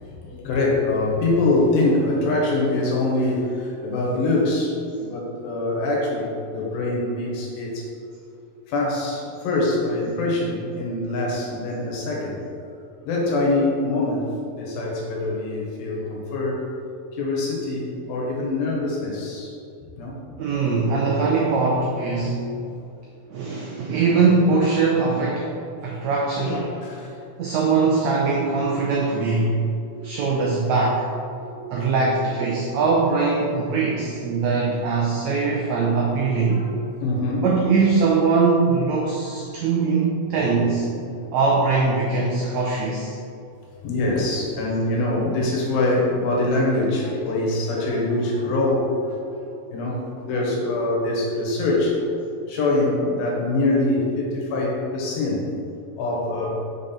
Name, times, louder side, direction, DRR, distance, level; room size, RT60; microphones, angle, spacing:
voice 1, 0.2-7.9 8.7-12.4 13.0-16.6 17.1-19.6 20.0-20.3 26.4-27.2 29.4-29.5 29.9-30.1 31.4-31.7 35.4-35.8 36.4-36.7 37.0-37.5 39.0-39.1 40.4-40.6 43.8-49.4 49.7-52.0 52.5-55.7 56.0-56.6, left 2 dB, 85° left, -2 dB, 3.0 m, -24 dB
voice 2, 20.4-22.6 23.3-25.6 25.8-26.7 27.4-29.6 30.0-31.1 31.7-36.6 37.4-40.9 41.3-43.2, right 4 dB, 85° right, -2 dB, 1.5 m, -21 dB
6.3 x 5.3 x 4.3 m, 2.5 s
omnidirectional pair, 4.0 m